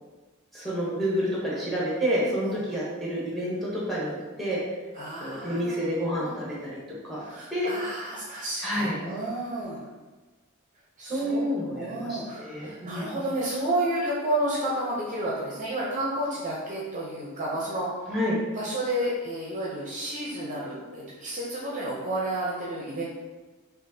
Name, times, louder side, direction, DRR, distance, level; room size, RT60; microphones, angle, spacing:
voice 1, 0.5-4.6 5.2-6.7 7.0-7.2 7.5-7.7 8.6-8.9 11.0-13.2 18.1-18.4, equal, ahead, -6 dB, 1.2 m, -29 dB
voice 2, 4.9-6.3 7.1-9.8 11.0-18.2 18.6-23.0, right 1 dB, 35° right, -5 dB, 0.6 m, -31 dB
6.1 x 2.4 x 2.7 m, 1.3 s
head